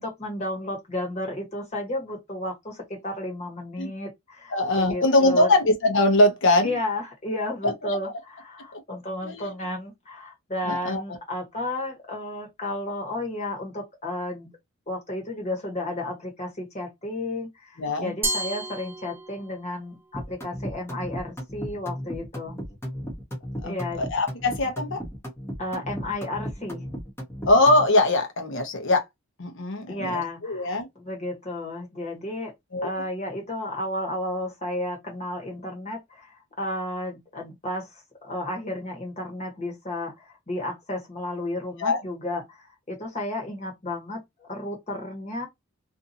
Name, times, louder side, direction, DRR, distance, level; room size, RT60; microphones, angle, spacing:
voice 1, 0.0-5.5 6.6-14.5 14.9-22.6 23.6-24.1 25.6-26.8 29.9-32.5 32.8-45.5, left 1 dB, 30° left, 1.2 m, -32 dB
voice 2, 4.5-6.7 7.6-7.7 8.7-8.8 9.2-9.5 10.7-11.0 17.8-18.1 23.6-25.0 27.4-29.0 29.4-30.9 32.7-32.9 41.8-42.0, left 2 dB, 55° left, 0.9 m, -22 dB
Glass, 18.2-19.7, right 2 dB, 10° right, 0.4 m, -31 dB
sound 1, 20.1-27.9, equal, 10° left, 0.9 m, -35 dB
2.7 x 2.6 x 2.6 m
head